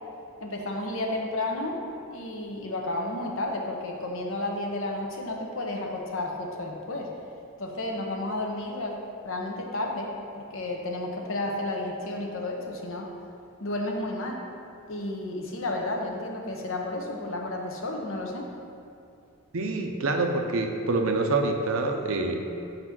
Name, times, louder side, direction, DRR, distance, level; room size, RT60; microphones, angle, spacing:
voice 1, 0.4-1.8 2.1-7.1 7.6-13.1 13.6-14.4 14.9-18.5, left 2 dB, 65° left, 1 dB, 1.0 m, -32 dB
voice 2, 19.5-22.4, right 3 dB, 75° right, 4 dB, 0.7 m, -26 dB
6.8 x 4.0 x 6.1 m, 2.5 s
head